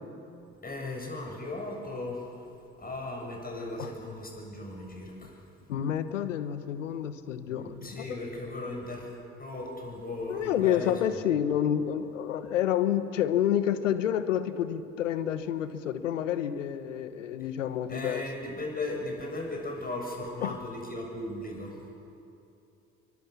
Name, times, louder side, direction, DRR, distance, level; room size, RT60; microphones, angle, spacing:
voice 1, 0.6-2.5 2.8-5.4 7.5-11.2 17.9-21.8, left 2 dB, 25° left, 0 dB, 7.4 m, -37 dB
voice 2, 5.7-8.0 10.3-18.2 20.4-20.6, left 10 dB, 85° left, 12 dB, 1.2 m, -29 dB
29.5 x 23.5 x 7.1 m, 2.7 s
hypercardioid pair, 50°, 37 cm